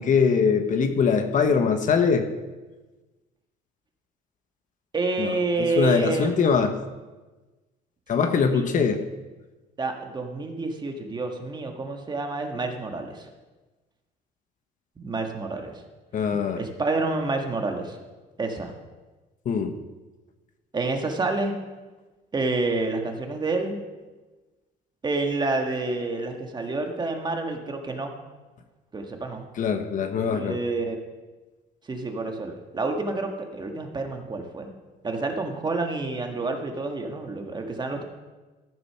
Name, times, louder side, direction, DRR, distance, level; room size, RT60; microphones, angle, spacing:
voice 1, 0.0-2.3 5.2-6.8 8.1-9.0 16.1-16.6 19.4-19.8 29.6-30.6, left 6 dB, 50° left, 7 dB, 1.0 m, -22 dB
voice 2, 4.9-6.4 8.5-8.8 9.8-13.3 15.0-15.8 16.6-18.0 18.4-18.7 20.7-21.6 22.3-23.8 25.0-28.1 28.9-29.5 30.3-31.0 31.9-34.7 35.0-38.0, right 3 dB, 25° right, 4 dB, 1.6 m, -28 dB
13.5 x 6.8 x 5.8 m, 1.2 s
cardioid pair, 110°, 17 cm